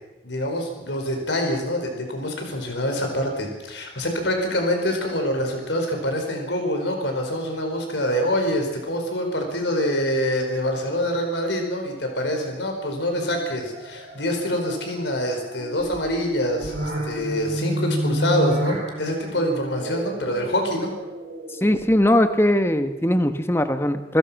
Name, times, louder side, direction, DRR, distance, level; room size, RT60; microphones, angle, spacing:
voice 1, 0.2-20.9, equal, 85° left, 3 dB, 5.2 m, -25 dB
sound 1, 13.2-22.2, right 1 dB, 65° right, 5.1 m, -31 dB
voice 2, 21.6-24.2, left 1 dB, 15° left, 9 dB, 1.1 m, -20 dB
28.0 x 15.5 x 5.9 m, 1.0 s
head